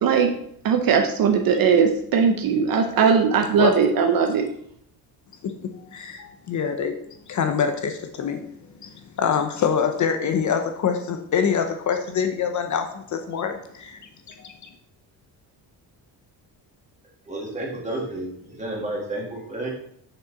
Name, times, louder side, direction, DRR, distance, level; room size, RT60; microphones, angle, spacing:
voice 1, 0.0-0.3 0.6-4.5, right 6 dB, 55° right, 6 dB, 0.8 m, -19 dB
voice 2, 5.8-7.0 7.3-8.4 8.8-14.0 14.3-14.7, left 7 dB, 45° left, 6 dB, 0.7 m, -25 dB
voice 3, 17.2-19.7, right 1 dB, 15° right, -2 dB, 2.1 m, -31 dB
6.7 x 6.0 x 4.1 m, 0.68 s
cardioid pair, 160°, 41 cm